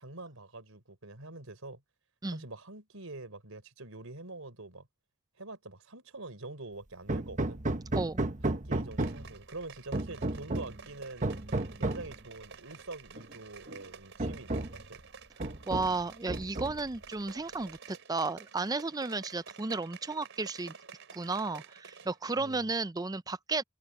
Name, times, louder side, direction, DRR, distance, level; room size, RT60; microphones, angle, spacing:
voice 1, 0.0-1.8 2.3-4.9 5.4-7.6 8.5-11.3 11.8-15.0 22.3-22.7, right 2 dB, 80° right, 4.2 m, -45 dB
Hammer, 7.1-9.4 9.9-10.8 11.2-12.1 13.2-13.3 13.7-13.8 14.2-14.9 15.4-16.0 16.3-17.0, right 2 dB, 35° right, 1.2 m, -33 dB
sound 1, 8.9-22.2 22.5-22.6, right 5 dB, 65° right, 4.5 m, -51 dB
voice 2, 15.7-20.7 21.1-23.6, right 3 dB, 20° right, 0.5 m, -33 dB
head